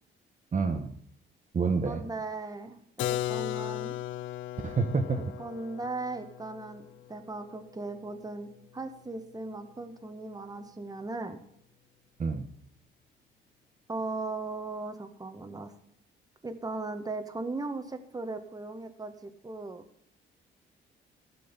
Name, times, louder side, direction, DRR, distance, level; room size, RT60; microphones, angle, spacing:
voice 1, 0.5-0.9 1.5-2.0 4.6-5.2 12.2-12.5, right 4 dB, 40° right, 5 dB, 1.4 m, -28 dB
voice 2, 1.8-2.8 3.1-4.0 5.4-11.4 13.9-15.7 16.4-19.8, right 3 dB, 20° right, 7 dB, 1.7 m, -38 dB
Keyboard (musical), 3.0-8.6, left 13 dB, 75° left, 0.5 m, -37 dB
14.5 x 6.2 x 7.3 m, 0.68 s
cardioid pair, 90°, 20 cm